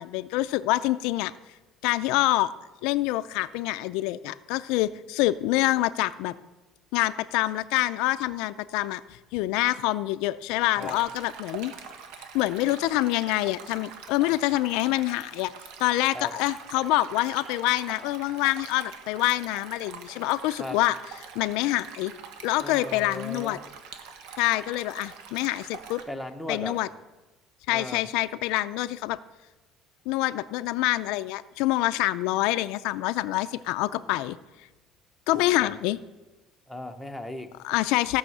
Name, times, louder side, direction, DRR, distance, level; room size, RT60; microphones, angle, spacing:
voice 1, 0.0-1.3 1.8-2.5 2.8-6.3 6.9-11.7 12.3-15.5 15.8-21.0 21.4-22.1 22.4-23.6 24.4-26.0 26.5-26.9 27.7-29.2 30.1-34.4 35.3-36.0 37.6-38.2, left 17 dB, 85° left, 12 dB, 0.5 m, -26 dB
Stream, 10.8-26.0, right 6 dB, 80° right, 1.5 m, -44 dB
voice 2, 22.6-23.6 26.1-26.8 27.7-28.0 33.8-34.1 35.3-35.7 36.7-37.5, left 1 dB, ahead, 8 dB, 0.9 m, -37 dB
15.5 x 6.3 x 7.8 m, 1.1 s
cardioid pair, 170°, 0 cm